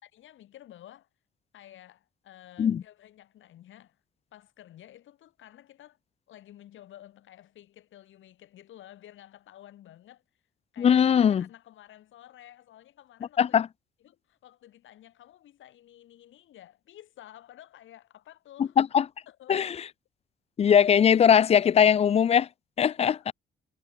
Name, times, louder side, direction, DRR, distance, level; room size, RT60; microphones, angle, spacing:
voice 1, 0.0-1.1 1.5-4.0 4.3-6.0 6.3-10.4 10.7-13.6 14.0-18.8 19.3-19.7 22.8-23.3, left 12 dB, 75° left, 4.6 m, -52 dB
voice 2, 10.8-11.4 13.4-13.7 18.6-19.1 19.5-19.7 20.6-22.5 22.8-23.3, left 8 dB, 30° left, 0.3 m, -20 dB
cardioid pair, 90°, 20 cm